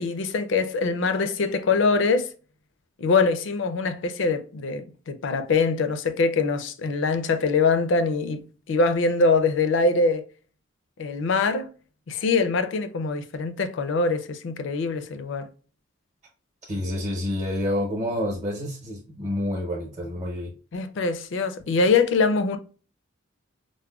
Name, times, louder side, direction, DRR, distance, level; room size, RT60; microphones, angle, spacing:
voice 1, 0.0-2.3 3.0-10.3 11.0-11.7 12.1-15.5 20.7-22.6, left 4 dB, 65° left, 0.4 m, -23 dB
voice 2, 16.6-20.5, left 1 dB, 30° right, 0.8 m, -28 dB
4.7 x 2.1 x 2.3 m
head